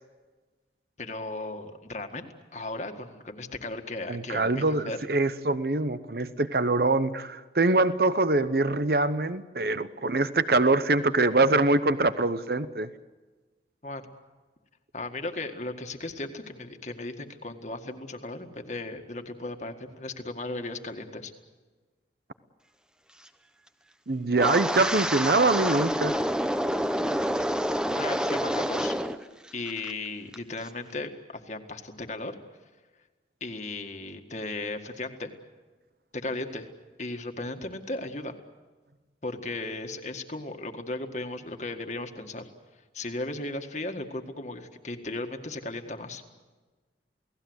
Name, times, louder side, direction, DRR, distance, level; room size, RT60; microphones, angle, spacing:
voice 1, 1.0-5.0 13.8-14.1 14.9-21.3 27.9-28.9 29.5-32.3 33.4-35.3 36.1-36.7 37.0-38.4 39.2-42.5 42.9-46.2, left 2 dB, 40° left, 5 dB, 1.8 m, -36 dB
voice 2, 4.1-12.9 24.1-26.2, right 2 dB, 55° right, 13 dB, 0.8 m, -24 dB
Wind, 24.3-29.2 29.5-29.9 30.3-30.6, equal, 5° right, 0.8 m, -28 dB
29.0 x 18.0 x 8.1 m, 1.3 s
head